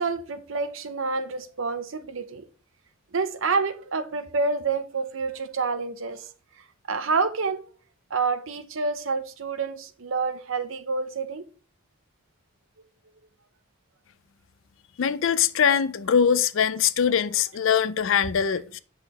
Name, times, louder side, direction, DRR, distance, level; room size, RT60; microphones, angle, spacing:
voice 1, 0.0-2.4 3.1-6.3 6.9-7.6 8.1-11.4, right 4 dB, 70° right, 0.7 m, -28 dB
voice 2, 15.0-18.8, left 7 dB, 65° left, 0.4 m, -22 dB
7.7 x 6.4 x 3.0 m
head